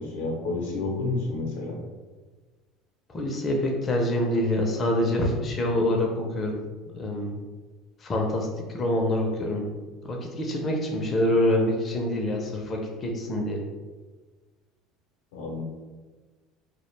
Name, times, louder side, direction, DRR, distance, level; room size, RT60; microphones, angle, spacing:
voice 1, 0.0-1.8 15.3-15.6, left 3 dB, 90° left, -1 dB, 0.6 m, -30 dB
voice 2, 3.1-6.6 6.9-7.4 8.0-9.7 10.0-13.6, left 1 dB, 30° left, 0 dB, 0.5 m, -26 dB
2.2 x 2.1 x 3.1 m, 1.3 s
supercardioid pair, 100°, 0 cm